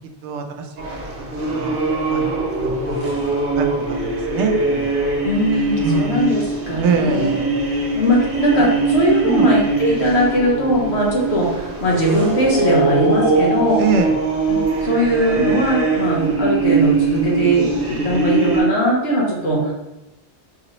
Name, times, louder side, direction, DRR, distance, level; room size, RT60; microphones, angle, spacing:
voice 1, 0.2-0.7 1.2-1.8 2.1-2.3 2.6-5.0 5.8-6.2 6.8-7.5 8.6-8.7 9.2-9.5 13.8-14.1, right 5 dB, 90° right, 5 dB, 0.9 m, -24 dB
sound 1, 0.8-18.6, right 3 dB, 55° right, 1.0 m, -21 dB
voice 2, 5.2-7.3 7.9-13.8 14.5-19.7, equal, 70° left, -3 dB, 1.3 m, -19 dB
4.5 x 2.9 x 3.0 m, 0.97 s
omnidirectional pair, 1.1 m